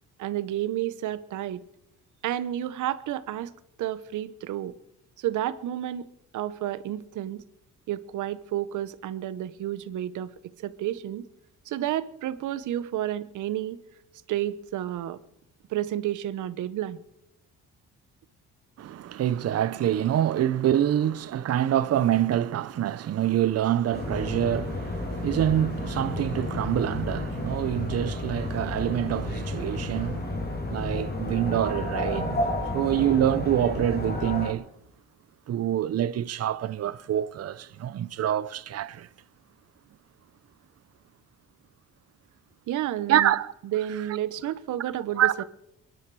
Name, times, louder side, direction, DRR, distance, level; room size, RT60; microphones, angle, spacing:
voice 1, 0.2-1.6 2.2-3.5 3.8-4.7 5.2-6.1 6.3-7.4 7.9-11.3 11.7-13.8 14.3-15.2 15.7-17.0 42.7-43.3 43.6-45.4, right 12 dB, 80° right, 0.9 m, -31 dB
voice 2, 18.8-30.4 30.7-32.4 32.7-34.7 35.5-39.1 43.1-43.5 45.2-45.4, right 11 dB, 55° right, 0.7 m, -26 dB
sound 1, 23.9-34.5, left 2 dB, 30° left, 2.7 m, -31 dB
23.5 x 10.5 x 4.8 m
cardioid pair, 90°, 30 cm